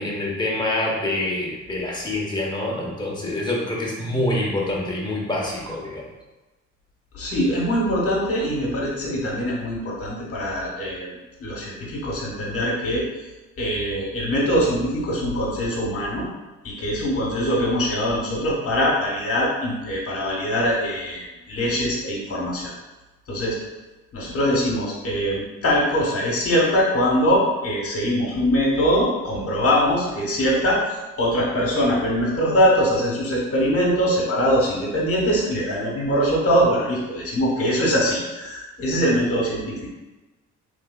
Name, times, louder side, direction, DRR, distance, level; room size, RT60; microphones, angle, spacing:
voice 1, 0.0-6.0, left 1 dB, 15° left, -3 dB, 0.9 m, -26 dB
voice 2, 7.1-11.1 11.4-13.1 13.6-16.2 16.6-22.7 23.3-23.6 24.1-39.9, equal, 50° left, -3 dB, 1.2 m, -22 dB
3.3 x 3.2 x 2.2 m, 1.1 s
cardioid pair, 90°, 30 cm